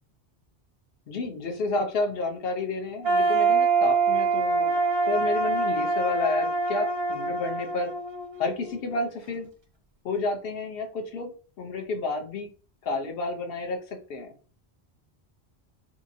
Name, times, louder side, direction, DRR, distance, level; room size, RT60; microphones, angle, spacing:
voice 1, 1.1-7.9 8.4-9.5 10.0-11.3 11.6-12.5 12.8-14.3, left 3 dB, 65° left, 3 dB, 0.8 m, -30 dB
sound 1, 3.0-9.0, right 4 dB, 35° right, 0.5 m, -25 dB
2.8 x 2.5 x 2.6 m, 0.40 s
omnidirectional pair, 1.1 m